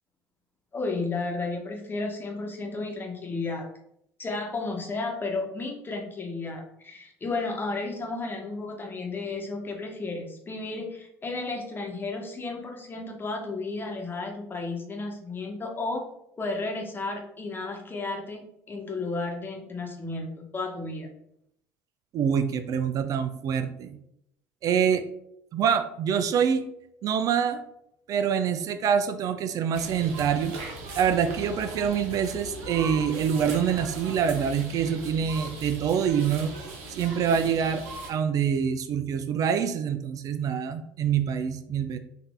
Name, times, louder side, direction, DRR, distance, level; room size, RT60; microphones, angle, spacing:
voice 1, 0.7-3.7 4.2-16.0 16.4-21.1, left 3 dB, 25° left, 2 dB, 1.1 m, -33 dB
voice 2, 22.1-24.0 24.6-25.0 25.5-26.6 27.0-27.6 28.1-30.5 31.0-36.5 37.0-37.8 38.1-42.0, right 7 dB, 50° right, 9 dB, 0.4 m, -25 dB
sound 1, 29.7-38.1, right 2 dB, 75° right, 1.0 m, -39 dB
4.0 x 2.6 x 3.6 m, 0.76 s
hypercardioid pair, 75°, 8 cm